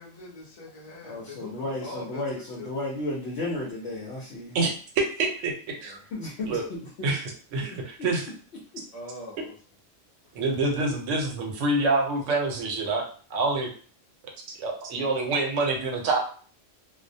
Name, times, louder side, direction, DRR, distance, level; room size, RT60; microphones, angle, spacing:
voice 1, 0.0-2.9 5.8-6.0 8.9-9.6, left 2 dB, 35° left, -3 dB, 0.6 m, -42 dB
voice 2, 1.0-4.6 6.1-6.6, left 2 dB, 65° left, -4 dB, 0.8 m, -33 dB
voice 3, 4.5-5.5 5.8-6.0 6.5-6.6 7.0-8.2 10.3-13.0 13.3-13.7 14.6-16.2, right 3 dB, 80° right, 2 dB, 1.0 m, -26 dB
2.3 x 2.1 x 2.6 m, 0.43 s
omnidirectional pair, 1.3 m